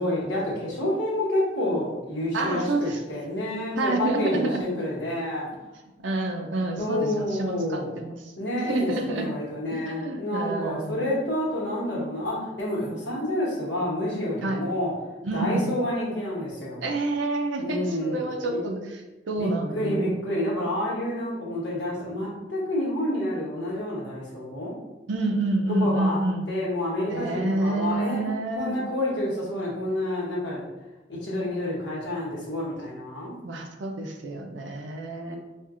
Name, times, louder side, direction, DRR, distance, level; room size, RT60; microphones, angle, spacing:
voice 1, 0.0-5.5 6.8-8.0 8.3-14.9 15.3-16.8 17.6-18.6 19.4-24.7 25.8-26.2 26.5-28.2 28.6-30.7 31.1-33.4 35.1-35.4, left 1 dB, 80° left, -6 dB, 1.3 m, -29 dB
voice 2, 2.3-3.0 3.8-4.7 6.0-8.3 8.7-9.3 9.7-11.0 14.4-14.6 15.2-15.7 16.8-20.0 25.1-26.5 27.1-28.8 33.4-35.4, right 2 dB, 90° right, 3 dB, 0.5 m, -28 dB
4.4 x 2.4 x 2.4 m, 1.1 s
head